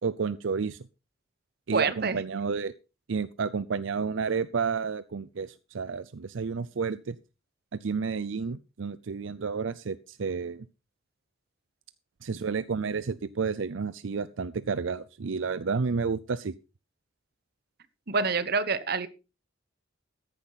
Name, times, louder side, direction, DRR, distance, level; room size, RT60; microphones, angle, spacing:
voice 1, 0.0-0.8 1.7-2.7 3.1-7.2 7.7-10.7 12.2-16.5, right 5 dB, 80° right, 16 dB, 0.5 m, -31 dB
voice 2, 1.7-2.2 12.3-12.4 18.1-19.1, right 4 dB, 55° right, 14 dB, 1.1 m, -27 dB
14.0 x 10.0 x 4.1 m, 0.30 s
head